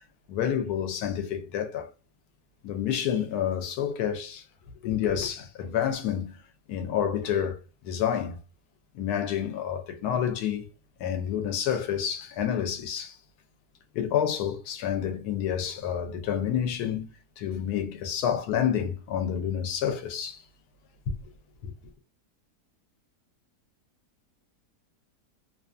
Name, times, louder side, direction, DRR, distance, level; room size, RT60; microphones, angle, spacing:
voice 1, 0.3-1.9 2.6-4.4 4.8-6.4 6.7-8.4 8.9-10.7 11.0-13.2 13.9-17.1 17.4-20.4 21.1-21.2 21.6-21.7, left 9 dB, 75° left, 1.1 m, -29 dB
2.7 x 2.4 x 2.4 m
omnidirectional pair, 1.7 m